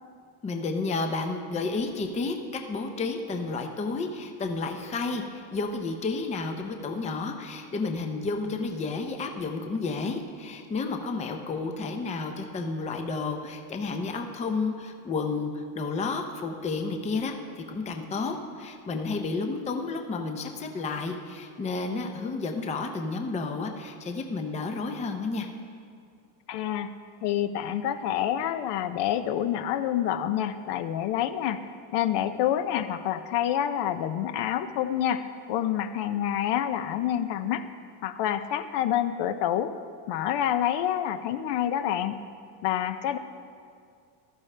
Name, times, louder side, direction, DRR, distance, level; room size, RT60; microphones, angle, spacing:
voice 1, 0.4-25.5, left 3 dB, 15° left, 5 dB, 0.5 m, -31 dB
voice 2, 26.5-26.9 27.2-31.6 31.9-37.7 38.0-39.7 40.1-42.2 42.6-43.2, left 10 dB, 55° left, 11 dB, 0.6 m, -27 dB
15.0 x 12.5 x 3.3 m, 2.2 s
cardioid pair, 150°, 49 cm